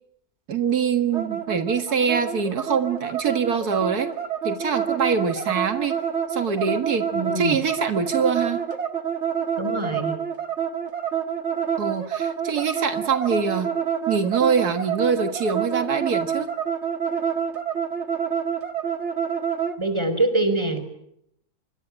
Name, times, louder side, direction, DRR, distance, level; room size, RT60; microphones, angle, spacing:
voice 1, 0.5-4.1 4.4-5.9 6.3-7.1 7.4-8.6 11.8-13.7 14.1-16.5, right 6 dB, 85° right, 8 dB, 2.2 m, -24 dB
sound 1, 1.1-19.8, right 8 dB, 50° right, 2.0 m, -27 dB
voice 2, 7.1-7.6 9.6-10.2 19.8-20.9, right 2 dB, 15° right, 10 dB, 4.9 m, -24 dB
25.5 x 23.0 x 10.0 m, 0.76 s
omnidirectional pair, 1.6 m